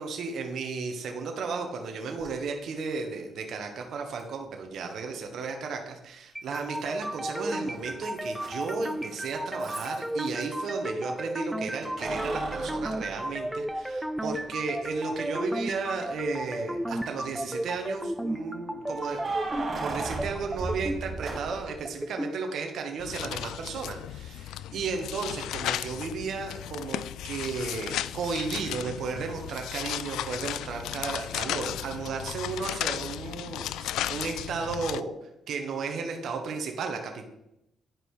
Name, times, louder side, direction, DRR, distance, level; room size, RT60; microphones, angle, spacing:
voice 1, 0.0-19.3 19.8-35.1 35.5-37.3, right 4 dB, 65° right, 3 dB, 1.4 m, -34 dB
Keys jangling, 2.2-2.3 4.2-4.3 6.5-7.1 7.4-10.6 11.8-13.9 14.4-14.5 16.3-16.9 18.8-21.8, right 3 dB, 45° right, 3.5 m, -36 dB
sound 1, 6.4-22.3, right 1 dB, 5° right, 0.4 m, -34 dB
sound 2, 23.0-35.0, left 12 dB, 85° left, 0.3 m, -35 dB
11.0 x 5.0 x 4.8 m, 0.84 s
cardioid pair, 90°, 0 cm